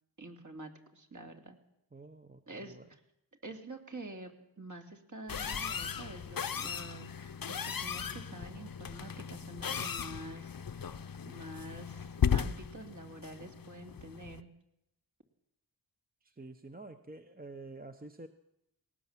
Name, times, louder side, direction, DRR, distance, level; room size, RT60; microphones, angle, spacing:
voice 1, 0.2-1.6 2.5-2.8 3.4-11.0 11.2-14.5, right 2 dB, 45° right, 3 dB, 3.0 m, -48 dB
voice 2, 1.9-2.9 16.2-18.3, right 2 dB, 20° right, 8 dB, 0.9 m, -49 dB
sound 1, 5.3-14.4, left 7 dB, 50° left, 0.8 m, -36 dB
19.5 x 18.5 x 7.4 m, 0.82 s
wide cardioid pair, 105°, 43 cm